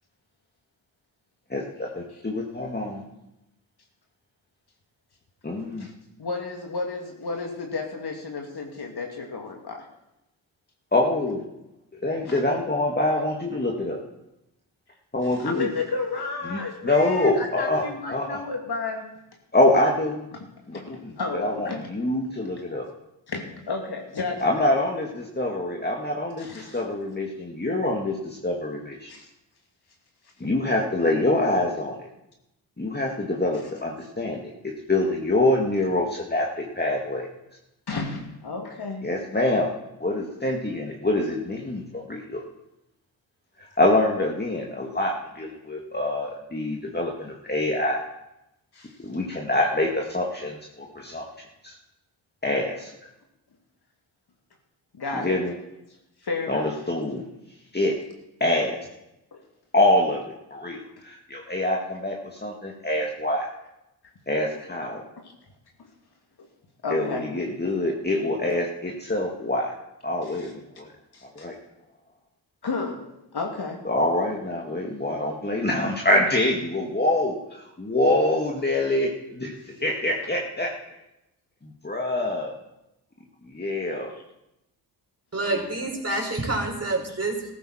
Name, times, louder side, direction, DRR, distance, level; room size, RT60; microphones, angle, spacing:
voice 1, 1.5-3.0 5.4-5.9 10.9-11.4 12.0-14.0 15.1-15.7 16.4-18.4 19.5-20.3 20.7-22.9 24.4-29.1 30.4-32.1 32.8-37.3 39.0-39.7 40.0-42.4 43.6-48.1 49.0-51.2 51.6-51.7 52.4-52.9 55.1-55.5 56.5-57.3 57.7-57.9 58.4-58.8 59.7-60.2 60.5-63.5 64.3-65.0 66.9-69.7 70.0-70.9 71.2-71.6 73.8-80.7 81.8-82.5 83.5-84.1, left 1 dB, 20° left, -1 dB, 2.1 m, -25 dB
voice 2, 6.2-9.8 12.3-12.4 15.4-19.1 20.3-20.4 20.7-20.8 21.2-21.9 23.3-24.4 26.4-26.8 29.1-29.3 37.9-39.1 48.7-48.9 54.9-55.4 56.2-56.7 59.3-59.4 65.2-65.3 66.8-67.3 70.3-70.5 71.1-71.5 72.6-73.0 73.3-73.8 84.1-84.2, left 4 dB, 50° left, 2 dB, 2.9 m, -32 dB
voice 3, 85.3-87.5, right 2 dB, 30° right, 1 dB, 4.5 m, -27 dB
14.5 x 13.5 x 4.4 m, 0.90 s
hypercardioid pair, 40°, 48 cm